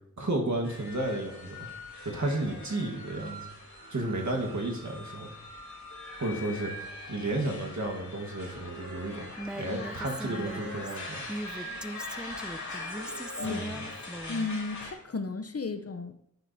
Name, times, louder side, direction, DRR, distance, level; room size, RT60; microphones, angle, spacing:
voice 1, 0.2-1.7 2.0-3.5 3.9-5.3 6.2-11.3 13.4-13.9, right 2 dB, 65° right, 0 dB, 1.5 m, -33 dB
sound 1, 0.6-14.9, left 1 dB, 70° left, 2.7 m, -42 dB
Female speech woman speaking, 9.4-14.5, equal, 5° right, 0.5 m, -39 dB
voice 2, 14.3-16.1, left 4 dB, 50° left, 9 dB, 0.7 m, -34 dB
11.0 x 9.6 x 2.7 m, 0.78 s
wide cardioid pair, 45°, 30 cm